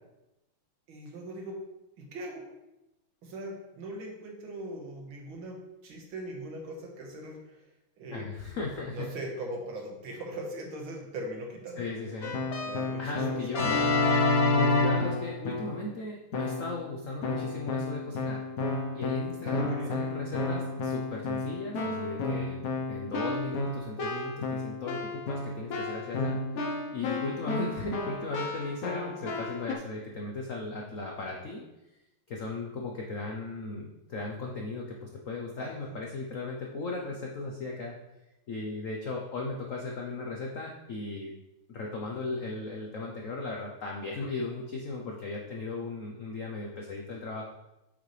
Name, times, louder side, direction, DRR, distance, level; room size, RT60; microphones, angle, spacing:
voice 1, 0.9-1.6 2.0-2.5 3.2-7.4 8.0-8.3 8.9-11.9 12.6-13.4 19.4-20.0 35.6-35.7, right 1 dB, 65° right, 0 dB, 2.1 m, -40 dB
voice 2, 8.1-9.1 11.8-12.3 13.0-13.8 14.5-18.4 18.9-22.6 22.9-26.4 26.9-31.6 32.3-38.0 38.5-41.3 41.7-47.5, left 3 dB, 75° left, 0 dB, 0.7 m, -37 dB
Keyboard (musical), 12.2-15.9 16.3-16.8 17.2-29.7, left 3 dB, 55° left, 1.0 m, -30 dB
8.5 x 5.6 x 3.3 m, 0.94 s
omnidirectional pair, 2.4 m